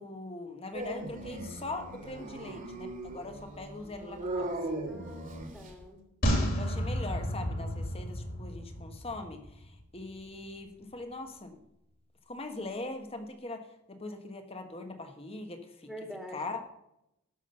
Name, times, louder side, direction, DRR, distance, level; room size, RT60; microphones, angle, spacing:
voice 1, 0.0-4.5 6.5-11.6 12.3-15.9 16.3-16.6, left 2 dB, 25° left, 6 dB, 1.3 m, -41 dB
Dog, 0.7-5.8, right 1 dB, 35° right, 2.2 m, -38 dB
voice 2, 4.9-6.0 15.9-16.4, equal, ahead, 0 dB, 1.9 m, -45 dB
sound 1, 6.2-9.7 10.0-10.1, equal, 45° left, 3.1 m, -31 dB
12.5 x 6.1 x 6.8 m, 0.83 s
head